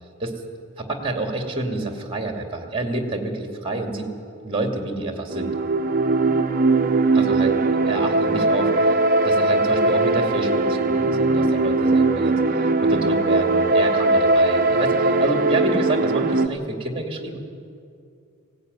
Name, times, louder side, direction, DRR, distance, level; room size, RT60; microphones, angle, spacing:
voice 1, 0.8-4.1 4.4-5.5 7.1-8.9 9.2-12.3 12.8-17.4, right 2 dB, 25° right, 4 dB, 2.6 m, -28 dB
sound 1, 5.3-16.5, right 2 dB, 45° right, 0.9 m, -20 dB
19.0 x 17.0 x 9.5 m, 2.4 s
head